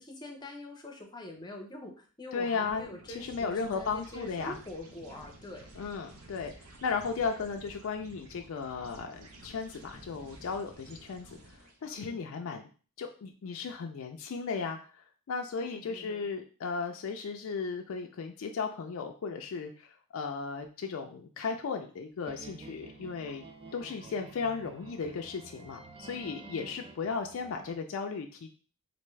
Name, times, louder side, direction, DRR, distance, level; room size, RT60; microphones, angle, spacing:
voice 1, 0.0-5.7 11.9-12.2 15.5-16.3 26.3-26.9, left 1 dB, 20° left, 2 dB, 0.6 m, -45 dB
voice 2, 2.3-2.9 3.1-4.6 5.8-11.4 11.8-12.6 13.0-14.8 15.3-23.4 23.7-28.5, left 5 dB, 65° left, 3 dB, 0.4 m, -35 dB
sound 1, 2.5-12.0, right 2 dB, 70° right, 0.6 m, -52 dB
sound 2, 22.2-27.8, right 3 dB, 25° right, 0.3 m, -50 dB
3.4 x 2.6 x 3.1 m, 0.38 s
head